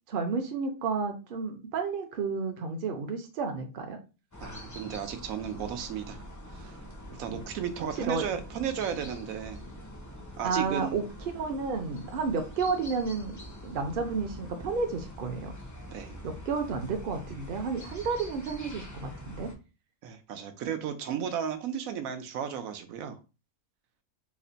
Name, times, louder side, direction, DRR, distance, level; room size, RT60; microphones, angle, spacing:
voice 1, 0.1-4.0 8.0-8.2 10.4-15.6 16.2-19.5, right 4 dB, 50° right, 0.7 m, -31 dB
sound 1, 4.3-19.5, equal, 30° left, 0.3 m, -44 dB
voice 2, 4.4-6.2 6.5-6.8 7.1-9.6 10.4-11.0 15.9-16.2 20.0-23.2, right 8 dB, 85° right, 1.0 m, -34 dB
3.2 x 2.1 x 3.8 m
omnidirectional pair, 1.4 m